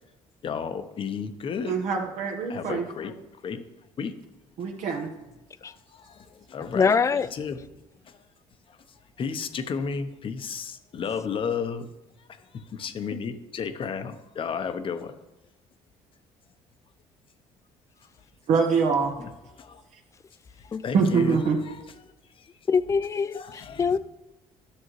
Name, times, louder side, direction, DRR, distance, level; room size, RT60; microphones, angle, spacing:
voice 1, 0.4-1.7 2.5-3.6 4.0-4.2 5.6-7.6 8.1-8.2 8.7-8.8 9.2-11.9 12.4-15.1 19.2-19.3 19.6-19.8 20.6-21.8 22.0-22.5 23.3-24.0, left 6 dB, 45° left, 0.8 m, -33 dB
voice 2, 1.7-2.9 4.6-5.1 18.5-19.1 20.9-21.6, right 5 dB, 65° right, 1.0 m, -24 dB
voice 3, 6.7-7.3 20.7-20.8 22.7-24.0, left 5 dB, 25° left, 0.3 m, -23 dB
11.5 x 6.3 x 3.1 m
supercardioid pair, 90°, 13 cm